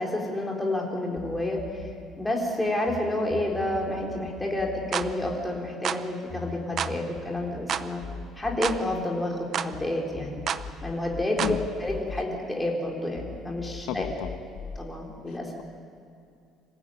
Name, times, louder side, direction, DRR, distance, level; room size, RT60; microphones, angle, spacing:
voice 1, 0.0-1.9 2.2-8.0 8.4-10.4 10.8-14.1 14.8-15.5, left 1 dB, 5° left, -1 dB, 3.7 m, -29 dB
sound 1, 1.2-3.0 3.3-9.9 10.2-12.8 13.2-14.8, left 5 dB, 35° left, 1.4 m, -41 dB
sound 2, 4.9-5.1 5.8-6.0 6.8-7.0 7.7-7.9 8.6-8.8 9.5-9.7 10.5-10.6 11.4-11.6, right 8 dB, 40° right, 0.7 m, -29 dB
voice 2, 13.9-14.4 15.3-15.6, left 11 dB, 80° left, 9 dB, 1.4 m, -33 dB
25.5 x 16.0 x 9.1 m, 2.4 s
cardioid pair, 165°, 0 cm